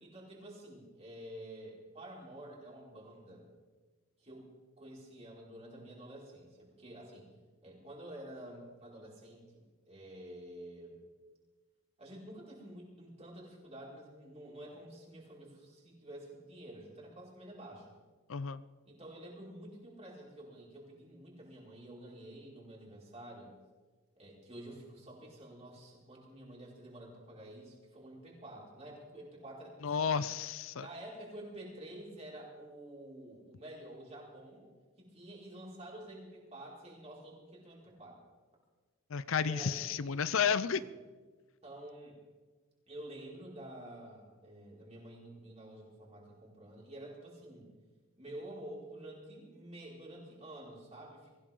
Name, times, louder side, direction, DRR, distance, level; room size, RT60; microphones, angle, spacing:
voice 1, 0.0-3.5 4.2-4.5 4.8-7.3 7.6-11.0 12.0-17.9 18.9-23.6 24.2-30.2 30.8-34.7 35.0-38.2 39.4-40.0 40.7-40.8 41.6-42.2 42.9-47.7 48.2-51.3, right 1 dB, 30° right, -4 dB, 5.2 m, -49 dB
voice 2, 18.3-18.6 29.8-30.9 39.1-40.8, left 6 dB, 65° left, 16 dB, 0.5 m, -32 dB
23.5 x 16.0 x 3.8 m, 1.3 s
head